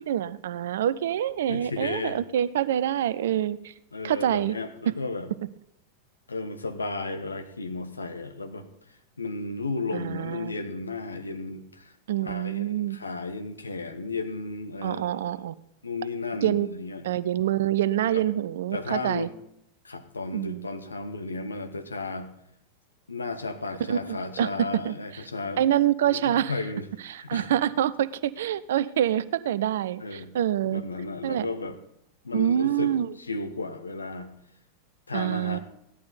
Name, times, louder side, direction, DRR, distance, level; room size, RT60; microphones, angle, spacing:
voice 1, 0.0-3.7 4.0-4.5 4.9-5.0 9.9-10.6 12.1-13.0 14.8-15.5 16.4-16.7 17.0-19.3 20.3-20.6 23.9-24.9 25.6-26.5 27.1-30.8 31.2-31.5 32.3-33.1 35.1-35.6, right 11 dB, 60° right, 18 dB, 0.5 m, -26 dB
voice 2, 1.5-2.2 3.9-5.3 6.3-8.7 9.2-11.9 12.2-15.4 15.8-17.0 18.1-18.2 18.7-19.3 19.8-22.3 23.1-25.7 26.0-26.9 27.2-27.5 30.0-30.3 30.6-31.8 32.2-34.3 35.1-35.6, left 3 dB, 80° left, 7 dB, 1.2 m, -34 dB
15.5 x 11.5 x 4.1 m, 0.77 s
figure-of-eight pair, 90°, 0 cm